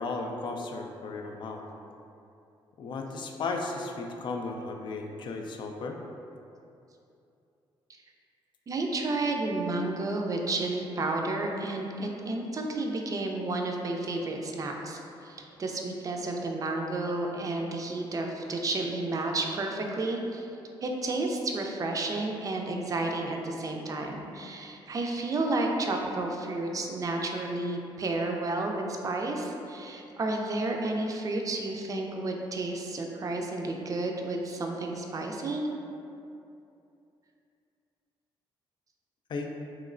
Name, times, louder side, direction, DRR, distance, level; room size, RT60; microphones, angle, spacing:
voice 1, 0.0-1.6 2.8-6.0 39.3-39.5, left 3 dB, 55° left, 2 dB, 0.3 m, -35 dB
voice 2, 8.7-20.5 20.8-35.7, right 2 dB, 35° right, 2 dB, 0.4 m, -31 dB
3.1 x 2.9 x 2.4 m, 2.7 s
cardioid pair, 90°, 10 cm